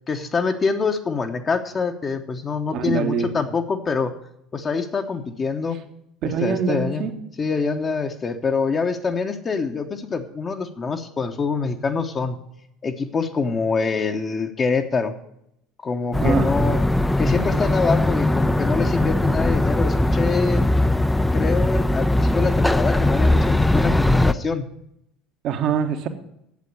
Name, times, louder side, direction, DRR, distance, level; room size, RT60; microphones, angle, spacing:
voice 1, 0.1-4.1 4.5-5.8 6.2-7.1 7.4-12.4 12.8-15.2 15.8-16.8 17.2-20.6 21.3-24.7, left 4 dB, 30° left, 4 dB, 0.9 m, -25 dB
voice 2, 2.7-3.3 6.2-7.1 16.2-16.5 25.4-26.1, right 6 dB, 55° right, 7 dB, 1.2 m, -23 dB
sound 1, 16.1-24.3, left 1 dB, 5° left, 0.4 m, -20 dB
8.4 x 7.6 x 7.9 m, 0.78 s
hypercardioid pair, 70°, 0 cm